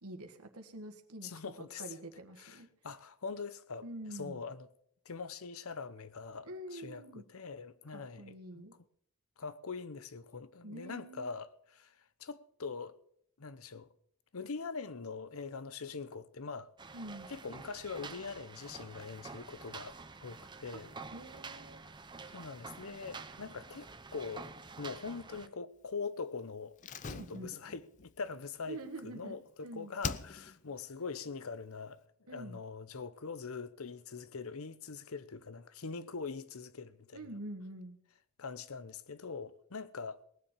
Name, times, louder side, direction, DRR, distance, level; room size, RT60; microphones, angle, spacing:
voice 1, 0.0-1.3 1.6-2.7 3.8-4.4 6.4-7.2 7.9-8.7 10.6-11.3 16.9-17.3 20.7-20.8 21.1-21.8 27.1-27.5 28.7-29.4 29.6-29.9 32.3-32.6 37.1-38.0, right 1 dB, 90° right, 1.7 m, -46 dB
voice 2, 1.2-1.8 2.4-4.7 5.0-8.7 9.4-11.9 12.2-13.0 13.4-13.9 14.3-16.7 17.3-20.9 22.3-24.5 24.8-26.8 27.1-32.0 32.3-37.2 38.4-40.2, left 4 dB, 75° left, 0.8 m, -43 dB
sound 1, 16.8-25.5, right 4 dB, 20° right, 0.7 m, -49 dB
Slam, 26.8-29.5 30.0-30.8 31.0-31.1, left 5 dB, 35° left, 0.5 m, -43 dB
19.5 x 7.4 x 6.8 m
head